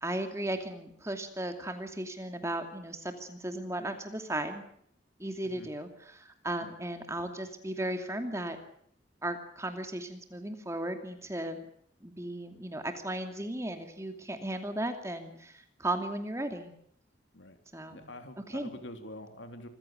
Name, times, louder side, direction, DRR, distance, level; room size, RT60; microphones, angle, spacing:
voice 1, 0.0-4.6 5.2-8.6 9.2-11.6 12.0-16.7 17.7-18.1 18.5-18.7, right 1 dB, 15° right, 6 dB, 2.6 m, -36 dB
voice 2, 17.9-19.7, left 1 dB, 85° left, 7 dB, 3.3 m, -46 dB
26.0 x 15.5 x 9.0 m, 0.67 s
head